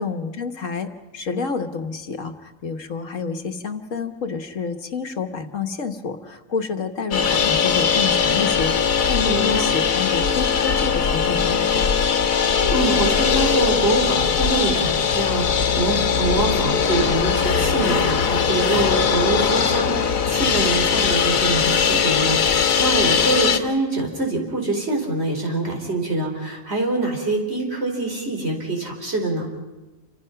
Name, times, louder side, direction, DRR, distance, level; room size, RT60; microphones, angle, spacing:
voice 1, 0.0-11.9, left 5 dB, 70° left, 7 dB, 1.7 m, -29 dB
sound 1, 7.1-23.6, left 6 dB, 90° left, 1.6 m, -20 dB
voice 2, 9.3-9.7 12.7-29.5, right 2 dB, 50° right, 2 dB, 4.6 m, -25 dB
28.5 x 25.5 x 5.8 m, 1.1 s
omnidirectional pair, 1.4 m